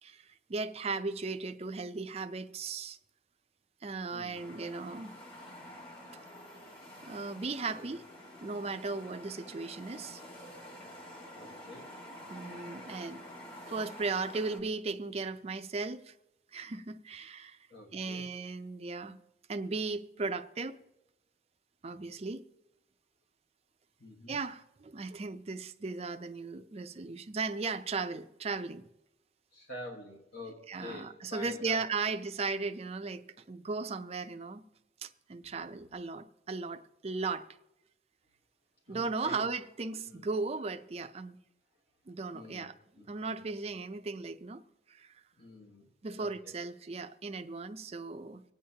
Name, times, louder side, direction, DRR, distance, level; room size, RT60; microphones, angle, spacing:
voice 1, 0.0-3.0 3.8-5.1 7.0-8.0 8.4-10.2 12.3-13.2 13.7-16.1 16.5-17.6 17.9-19.2 19.5-20.8 21.8-22.4 24.3-28.8 30.7-34.6 35.0-37.5 38.9-41.4 42.1-42.7 43.1-44.6 44.9-45.1 46.0-48.4, right 4 dB, 35° right, 0.5 m, -36 dB
voice 2, 4.1-4.5 7.7-7.9 11.4-11.9 17.7-18.3 24.0-24.4 29.5-32.1 38.9-39.4 40.0-40.2 42.3-42.7 43.0-43.4 45.4-45.8 46.2-46.5, left 1 dB, 60° left, 1.4 m, -47 dB
sound 1, 4.3-14.6, equal, 30° left, 1.7 m, -49 dB
25.0 x 8.7 x 2.8 m
head